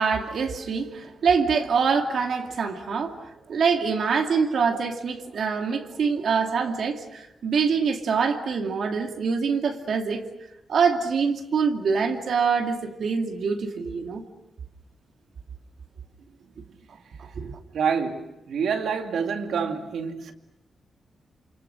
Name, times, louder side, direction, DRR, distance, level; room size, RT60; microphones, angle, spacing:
voice 1, 0.0-10.3 10.7-14.2 17.2-17.6, right 5 dB, 65° right, 2.5 m, -25 dB
voice 2, 17.7-20.3, right 6 dB, 90° right, 2.5 m, -27 dB
29.5 x 28.0 x 6.5 m
wide cardioid pair, 160°, 0 cm